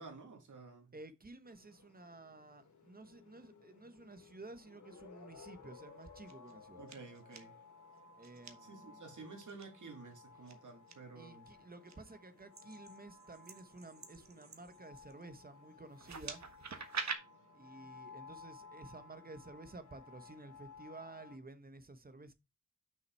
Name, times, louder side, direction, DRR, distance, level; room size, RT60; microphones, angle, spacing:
voice 1, 0.0-0.9 6.8-7.5 8.6-11.5, right 4 dB, 85° right, 2.4 m, -51 dB
voice 2, 0.9-6.8 8.2-9.1 11.1-16.4 17.5-22.3, right 2 dB, 30° right, 1.0 m, -53 dB
sound 1, 1.4-21.4, left 4 dB, 80° left, 2.5 m, -58 dB
sound 2, 6.0-6.5 6.9-7.4 8.2-8.5 9.4-9.6 10.5-10.9 11.5-11.9 12.5-15.2 15.9-17.2, right 5 dB, 65° right, 1.3 m, -45 dB
6.3 x 5.5 x 4.5 m
wide cardioid pair, 100°, 30 cm